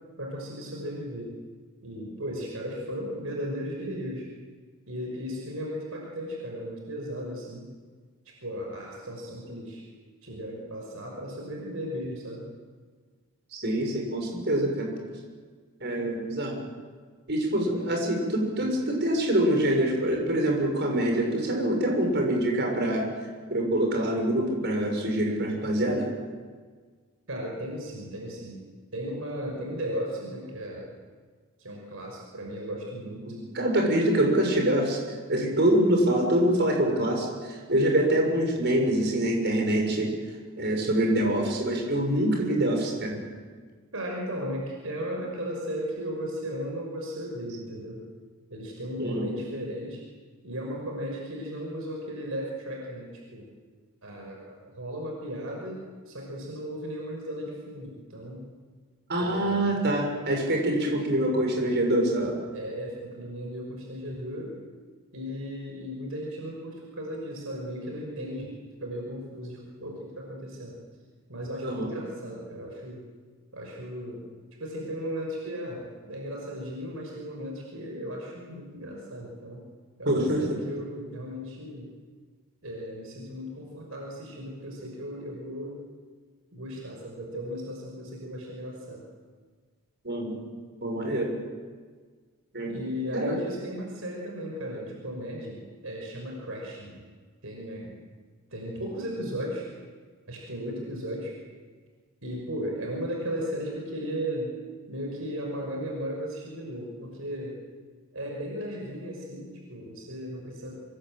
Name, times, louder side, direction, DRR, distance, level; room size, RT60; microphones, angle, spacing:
voice 1, 0.1-1.3 1.8-4.3 4.9-7.7 8.3-9.8 10.2-12.5 27.3-28.6 28.9-31.0 31.6-33.4 43.9-48.0 48.5-50.0 50.4-53.5 54.0-58.5 59.2-59.8 62.5-64.5 65.1-70.8 71.3-73.0 73.5-74.2 74.6-79.6 80.0-81.9 82.6-85.8 86.5-89.0 92.7-97.0 97.4-98.0 98.5-99.7 100.3-101.4 102.2-104.5 104.9-107.6 108.1-110.8, equal, 65° right, 0 dB, 5.8 m, -36 dB
voice 2, 13.5-14.9 15.8-16.6 17.3-23.0 23.5-26.1 33.3-35.0 35.3-40.1 40.6-43.2 49.0-49.3 59.1-62.3 71.6-71.9 80.0-80.6 90.0-90.4 90.8-91.3 92.5-92.8 93.1-93.4, right 1 dB, 50° right, 1 dB, 6.7 m, -25 dB
26.5 x 21.5 x 9.0 m, 1.6 s
head